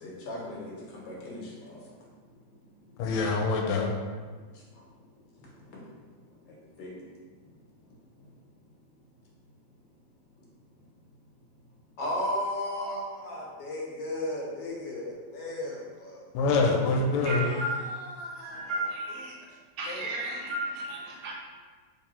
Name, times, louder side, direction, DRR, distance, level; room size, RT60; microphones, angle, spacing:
voice 1, 0.0-1.8 5.7-5.8 6.8-6.9 12.0-16.2 17.4-18.8 19.8-20.1, left 1 dB, 65° left, -4 dB, 1.4 m, -36 dB
voice 2, 3.0-4.0 16.3-17.4, left 3 dB, 85° left, 1 dB, 1.5 m, -25 dB
voice 3, 17.2-17.7 18.4-19.3 19.8-21.3, right 1 dB, 80° right, -3 dB, 1.5 m, -33 dB
3.3 x 3.3 x 3.0 m, 1.5 s
omnidirectional pair, 2.4 m